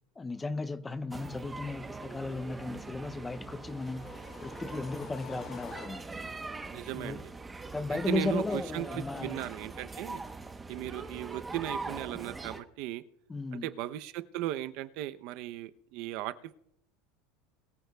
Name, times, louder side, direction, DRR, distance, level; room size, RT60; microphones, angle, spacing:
voice 1, 0.2-4.1 4.4-6.1 6.9-7.2 7.7-9.4 13.3-13.7, left 3 dB, 10° left, 0.5 m, -35 dB
sound 1, 1.1-12.6, right 3 dB, 10° right, 0.9 m, -42 dB
sound 2, 3.2-6.4, left 9 dB, 45° left, 1.1 m, -50 dB
voice 2, 6.7-7.2 8.1-10.2 10.7-13.0 13.5-16.5, right 14 dB, 60° right, 0.7 m, -37 dB
22.0 x 14.0 x 2.3 m
supercardioid pair, 140°, 0 cm